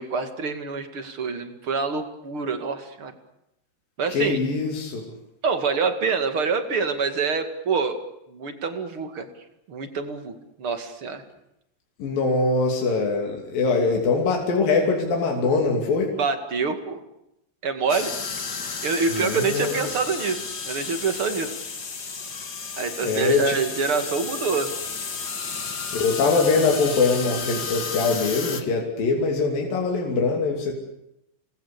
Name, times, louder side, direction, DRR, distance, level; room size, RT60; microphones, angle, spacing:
voice 1, 0.0-3.1 4.0-4.4 5.4-8.0 8.3-9.3 9.7-11.2 16.2-17.0 17.6-18.2 18.8-21.5 22.8-24.7, right 5 dB, 40° right, 8 dB, 2.7 m, -26 dB
voice 2, 4.1-5.1 12.0-16.1 19.1-19.7 23.0-23.6 25.9-30.7, left 4 dB, 75° left, 1 dB, 4.7 m, -23 dB
sound 1, 17.9-28.6, left 5 dB, 35° left, 2.0 m, -32 dB
29.5 x 20.5 x 8.5 m, 0.84 s
omnidirectional pair, 4.0 m